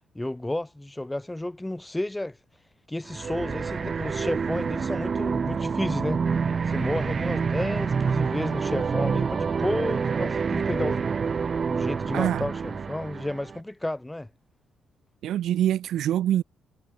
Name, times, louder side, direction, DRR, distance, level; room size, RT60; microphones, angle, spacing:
voice 1, 0.1-2.4 2.9-6.2 6.7-11.1 11.7-14.3, left 1 dB, 10° left, 6.1 m, -32 dB
sound 1, 3.1-13.6, right 5 dB, 35° right, 4.1 m, -27 dB
voice 2, 12.1-12.5 15.2-16.4, right 11 dB, 75° right, 5.1 m, -24 dB
cardioid pair, 130°, 0 cm